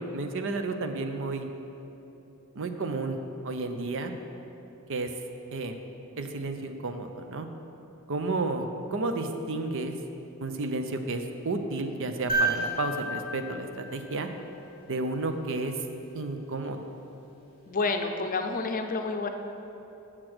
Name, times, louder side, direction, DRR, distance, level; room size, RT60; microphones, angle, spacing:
voice 1, 0.0-1.5 2.5-3.2 3.4-4.1 4.9-5.1 5.5-5.8 6.2-7.5 8.1-9.9 10.4-14.3 14.9-15.8 16.1-16.8, right 3 dB, 60° right, 6 dB, 0.6 m, -32 dB
sound 1, 12.3-14.6 16.6-16.7, right 2 dB, 25° right, 2.0 m, -31 dB
voice 2, 17.7-19.3, left 3 dB, 40° left, 5 dB, 0.6 m, -29 dB
7.4 x 6.8 x 6.1 m, 3.0 s
head